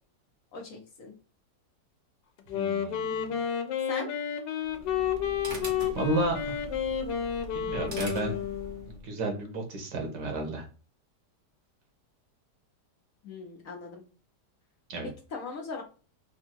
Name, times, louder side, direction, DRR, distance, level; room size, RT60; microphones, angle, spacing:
voice 1, 0.5-1.1 3.9-4.1 13.2-14.0 15.0-15.8, left 4 dB, 55° left, 2 dB, 1.2 m, -39 dB
Wind instrument woodwind instrument, 2.4-8.9, left 8 dB, 90° left, 1.4 m, -31 dB
voice 2, 2.5-3.4 6.0-6.6 7.5-8.4 8.9-10.6 14.9-15.1, right 2 dB, 80° right, 3 dB, 1.9 m, -32 dB
sound 1, 4.6-9.1, right 1 dB, 45° right, 1.5 m, -42 dB
4.4 x 2.4 x 4.4 m, 0.35 s
omnidirectional pair, 1.8 m